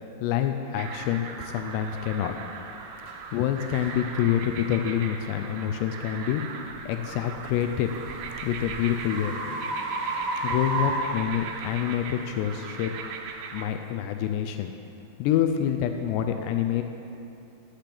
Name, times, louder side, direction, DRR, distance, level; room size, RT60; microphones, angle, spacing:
voice 1, 0.2-2.3 3.3-6.4 6.9-7.9 8.4-9.3 10.4-12.9 13.5-14.7 15.2-16.8, left 10 dB, 85° left, 6 dB, 2.7 m, -27 dB
sound 1, 0.8-13.7, right 5 dB, 90° right, 2.9 m, -39 dB
sound 2, 3.1-3.2 3.7-3.9 4.5-4.7 7.4-11.9, right 2 dB, 45° right, 1.9 m, -32 dB
14.5 x 10.0 x 3.5 m, 2.7 s
omnidirectional pair, 4.9 m